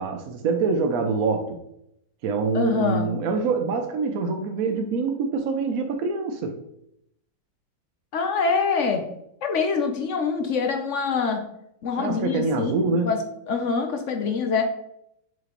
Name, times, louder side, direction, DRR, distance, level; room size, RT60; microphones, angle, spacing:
voice 1, 0.0-1.6 2.2-6.6 12.0-13.1, right 4 dB, 65° right, 4 dB, 0.9 m, -25 dB
voice 2, 2.5-3.1 8.1-9.0 9.4-11.4 11.8-13.2 13.5-14.6, left 5 dB, 60° left, 5 dB, 0.8 m, -25 dB
6.6 x 4.9 x 3.0 m, 0.77 s
omnidirectional pair, 2.0 m